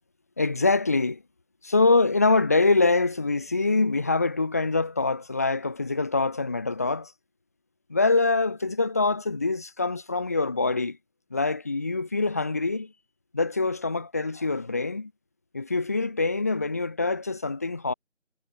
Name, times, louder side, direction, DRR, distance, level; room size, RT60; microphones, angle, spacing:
voice 1, 0.4-1.2 1.6-7.1 7.9-11.0 11.3-12.9 13.3-15.1 15.5-17.9, left 3 dB, 10° left, 4.6 m, -24 dB
figure-of-eight pair, 175°, 38 cm